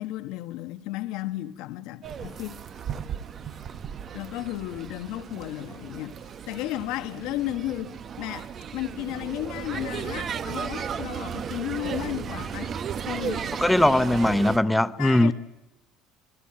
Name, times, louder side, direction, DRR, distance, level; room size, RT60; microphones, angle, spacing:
voice 1, 0.0-2.6 4.1-12.7 13.1-13.5 15.0-15.3, left 16 dB, 70° left, 1.4 m, -34 dB
sound 1, 2.0-14.6, right 7 dB, 30° right, 0.9 m, -35 dB
voice 2, 13.6-15.3, left 1 dB, 5° left, 0.9 m, -20 dB
28.0 x 21.0 x 8.9 m
cardioid pair, 155°, 0 cm